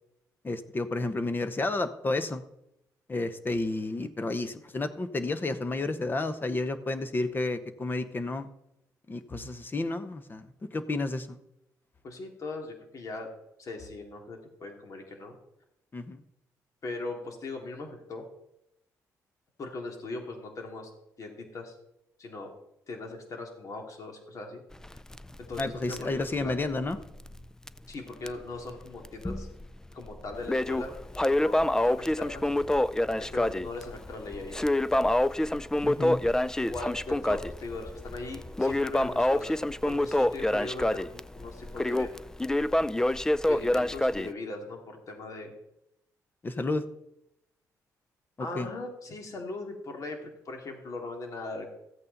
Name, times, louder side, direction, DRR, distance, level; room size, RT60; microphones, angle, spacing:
voice 1, 0.4-2.4 3.1-8.5 9.1-11.4 15.9-16.2 25.6-27.0 35.8-36.2 46.4-46.8 48.5-48.7, left 2 dB, 30° left, 11 dB, 1.1 m, -31 dB
voice 2, 12.0-13.3 13.6-15.3 16.8-18.2 19.6-20.9 21.2-21.7 22.2-22.5 22.9-24.6 25.4-26.5 27.9-29.5 29.9-32.5 33.2-34.7 36.6-39.6 39.8-42.1 43.4-45.5 48.4-51.8, left 2 dB, 55° left, 3 dB, 2.6 m, -39 dB
Crackle, 24.7-27.4 27.7-27.8 28.3-28.4 29.0-29.7 30.0-44.3, left 1 dB, 10° left, 0.4 m, -27 dB
14.0 x 8.4 x 4.1 m, 0.82 s
cardioid pair, 85°, 7 cm